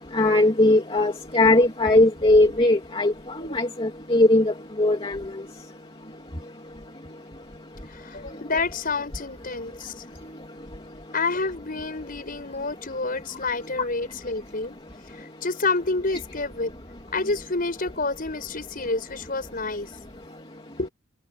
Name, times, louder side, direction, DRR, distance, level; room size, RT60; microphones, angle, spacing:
voice 1, 0.1-3.1 3.5-4.4 4.8-5.2, left 2 dB, 25° left, 2.6 m, -19 dB
voice 2, 7.9-9.9 11.1-14.8 15.2-16.7 17.1-19.9 20.8-20.9, left 3 dB, 40° left, 5.7 m, -28 dB
head